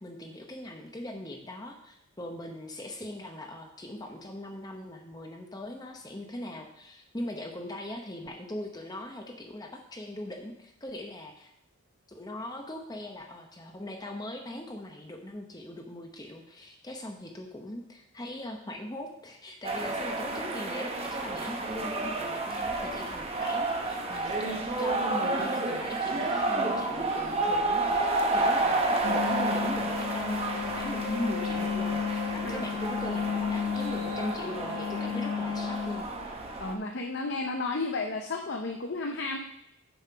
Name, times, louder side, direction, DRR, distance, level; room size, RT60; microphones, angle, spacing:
voice 1, 0.0-11.5 12.1-36.1, left 1 dB, 15° left, 3 dB, 0.8 m, -40 dB
sound 1, 19.6-36.7, right 2 dB, 25° right, 0.9 m, -31 dB
sound 2, 29.0-36.0, left 7 dB, 85° left, 1.0 m, -33 dB
voice 2, 36.6-39.4, left 3 dB, 50° left, 2 dB, 0.6 m, -32 dB
7.0 x 5.6 x 5.6 m, 0.78 s
head